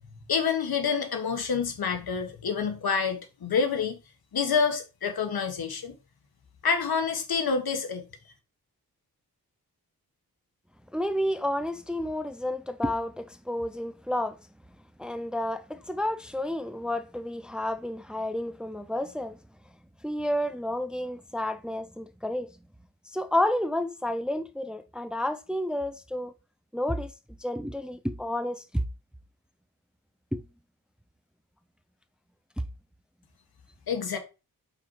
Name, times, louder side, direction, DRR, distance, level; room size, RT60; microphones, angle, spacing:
voice 1, 0.1-4.0 4.3-5.9 6.6-8.0 33.9-34.2, left 6 dB, 75° left, 1.6 m, -27 dB
voice 2, 10.9-14.4 15.0-19.4 20.0-22.5 23.1-26.3 26.7-27.1 27.4-28.8 30.3-30.4, left 1 dB, ahead, 0.6 m, -30 dB
5.9 x 4.4 x 4.7 m
wide cardioid pair, 85°, 37 cm